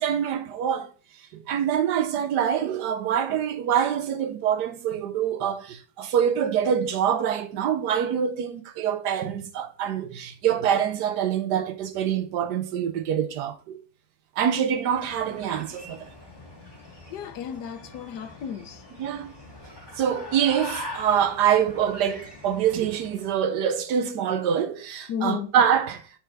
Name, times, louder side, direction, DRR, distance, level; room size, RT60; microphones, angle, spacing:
voice 1, 0.0-13.8 14.4-16.1 19.0-19.3 20.0-26.2, right 8 dB, 80° right, 1.3 m, -25 dB
sound 1, 14.7-23.4, left 2 dB, 15° left, 2.0 m, -42 dB
voice 2, 17.1-18.8 25.1-25.5, left 8 dB, 85° left, 1.4 m, -33 dB
8.2 x 4.5 x 4.7 m
omnidirectional pair, 1.8 m